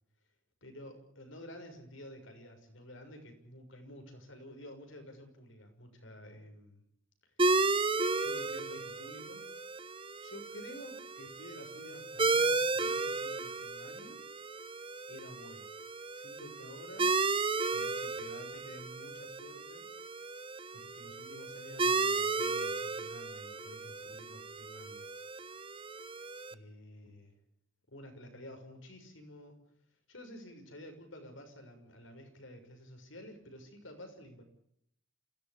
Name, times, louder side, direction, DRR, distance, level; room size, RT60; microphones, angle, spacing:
voice 1, 0.6-6.8 7.2-7.3 8.2-9.5 10.2-14.2 15.1-15.7 16.1-17.1 17.7-19.8 20.7-25.1 26.5-27.4 27.9-29.6 30.1-34.4, equal, 70° left, 5 dB, 6.3 m, -50 dB
sound 1, 7.4-26.5, right 3 dB, 25° right, 0.9 m, -34 dB
27.5 x 17.0 x 8.6 m, 0.72 s
head